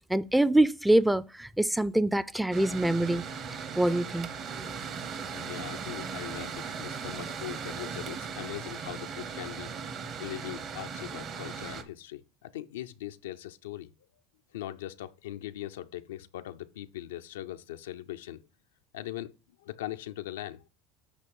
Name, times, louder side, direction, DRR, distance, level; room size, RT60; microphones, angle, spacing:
voice 1, 0.1-3.2 3.8-4.3, right 1 dB, 5° right, 0.4 m, -24 dB
Mechanical fan, 2.5-11.8, right 6 dB, 50° right, 1.0 m, -38 dB
voice 2, 5.3-9.7 10.2-13.9 14.5-18.4 18.9-19.3 19.6-20.6, left 13 dB, 90° left, 0.4 m, -40 dB
8.3 x 3.0 x 5.4 m
supercardioid pair, 95°, 0 cm